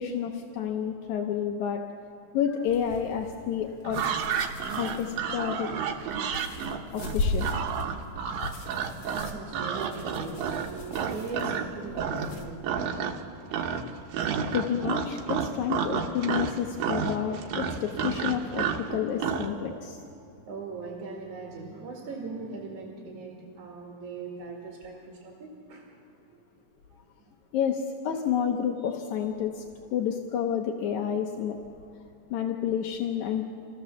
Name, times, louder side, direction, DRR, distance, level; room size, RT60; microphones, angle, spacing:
voice 1, 0.0-1.8 2.3-4.0 4.8-5.7 6.9-7.4 14.5-20.0 27.5-29.6 29.9-31.6 32.3-33.5, left 8 dB, 70° left, 3 dB, 1.8 m, -29 dB
sound 1, 2.7-12.5, left 2 dB, 50° left, 2.8 m, -38 dB
sound 2, 3.8-11.7 11.9-12.4 12.6-13.3 13.5-19.5, right 7 dB, 75° right, 2.7 m, -30 dB
voice 2, 9.0-12.6 13.3-13.5 18.7-18.9 19.3-20.1 20.5-25.9 26.3-26.4 26.9-27.3, right 4 dB, 55° right, -1 dB, 3.4 m, -40 dB
27.5 x 16.0 x 7.1 m, 2.5 s
omnidirectional pair, 4.3 m